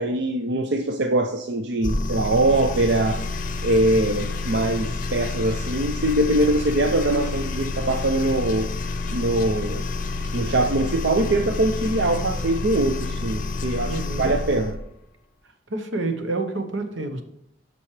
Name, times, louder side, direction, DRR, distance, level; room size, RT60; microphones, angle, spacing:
voice 1, 0.0-3.2 3.6-8.7 9.1-9.9 10.3-14.8, right 1 dB, 60° right, 5 dB, 0.5 m, -22 dB
sound 1, 1.8-14.8, left 3 dB, 45° left, 0.6 m, -29 dB
voice 2, 13.9-14.3 15.7-17.2, right 2 dB, 80° right, 6 dB, 1.0 m, -28 dB
8.6 x 6.1 x 3.2 m, 0.75 s
head